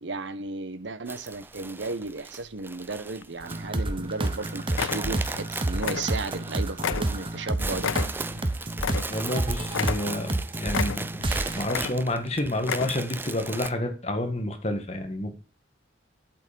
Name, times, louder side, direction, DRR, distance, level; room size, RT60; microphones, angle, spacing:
voice 1, 0.0-8.3, right 3 dB, 65° right, 13 dB, 1.0 m, -34 dB
sound 1, 1.1-13.7, right 3 dB, 10° right, 0.4 m, -37 dB
sound 2, 3.2-3.9 4.2-4.4 4.7-5.5 5.7-6.5 6.8-9.4 9.7-10.3 10.7-11.3 11.6-12.2 12.6-13.2 13.6-13.7, left 7 dB, 90° left, 0.4 m, -32 dB
sound 3, 3.4-11.6, right 1 dB, 25° right, 0.9 m, -30 dB
voice 2, 9.1-11.1 11.6-15.4, left 1 dB, 35° left, 5 dB, 1.8 m, -29 dB
8.3 x 7.9 x 5.2 m, 0.33 s
head